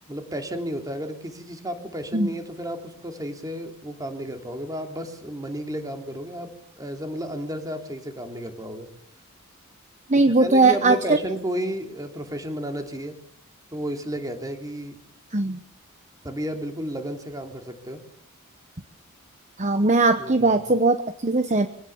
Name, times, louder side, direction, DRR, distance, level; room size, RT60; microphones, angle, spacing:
voice 1, 0.1-6.5 6.8-8.9 10.1-13.2 13.7-14.9 16.2-18.0 20.2-20.8, equal, 15° right, 5 dB, 3.1 m, -32 dB
voice 2, 10.1-11.0 15.3-15.6 19.6-21.7, right 3 dB, 30° right, 9 dB, 1.1 m, -19 dB
24.0 x 18.0 x 7.2 m, 0.70 s
head